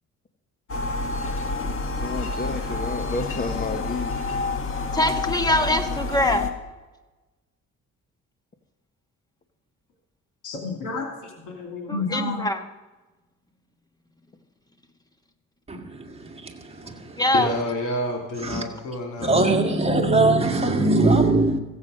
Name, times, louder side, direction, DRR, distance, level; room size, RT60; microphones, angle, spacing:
sound 1, 0.7-6.5, left 3 dB, 45° left, 1.6 m, -28 dB
voice 1, 2.0-4.2, left 3 dB, 30° left, 6 dB, 1.1 m, -31 dB
voice 2, 4.9-6.5 11.9-12.6 17.2-17.5, left 1 dB, 15° left, 7 dB, 1.3 m, -23 dB
voice 3, 10.4-12.5 16.8-16.9 17.3-19.4, left 2 dB, 90° left, 1 dB, 2.8 m, -29 dB
voice 4, 15.8-17.3 18.4-18.7 19.2-21.6, right 2 dB, 20° right, 2 dB, 1.9 m, -21 dB
15.0 x 8.4 x 6.3 m, 1.2 s
cardioid pair, 90°, 30 cm